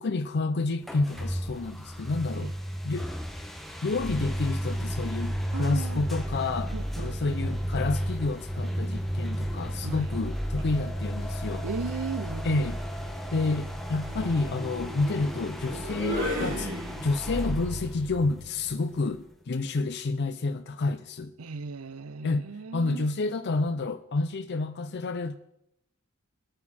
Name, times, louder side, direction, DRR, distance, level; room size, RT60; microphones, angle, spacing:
voice 1, 0.0-2.5 2.8-3.1 3.8-11.6 12.4-12.8 13.3-16.7 17.0-19.2 19.5-21.3 22.2-25.4, left 3 dB, 55° left, 0.5 m, -29 dB
sound 1, 0.8-19.3, equal, ahead, 1.3 m, -33 dB
voice 2, 5.5-6.0 6.7-7.5 9.8-10.1 11.6-12.7 21.4-23.1, right 4 dB, 90° right, 0.6 m, -37 dB
sound 2, 10.6-10.8 12.1-17.4, equal, 65° right, 3.6 m, -37 dB
21.0 x 8.9 x 4.2 m
head